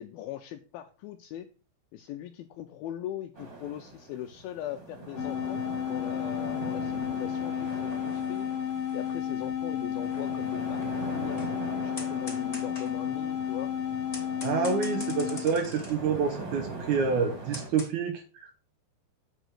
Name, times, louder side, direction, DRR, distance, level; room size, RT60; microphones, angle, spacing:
voice 1, 0.0-1.5 1.9-8.5 8.9-11.5 11.8-13.7, left 12 dB, 85° left, 8 dB, 2.1 m, -40 dB
sound 1, 3.3-17.7, right 3 dB, 30° right, 2.6 m, -42 dB
sound 2, 5.2-15.5, left 9 dB, 65° left, 2.4 m, -32 dB
sound 3, 7.6-17.9, left 2 dB, 10° left, 2.9 m, -47 dB
voice 2, 14.4-18.5, right 5 dB, 75° right, 3 dB, 1.8 m, -28 dB
8.1 x 4.9 x 6.3 m, 0.36 s
omnidirectional pair, 4.9 m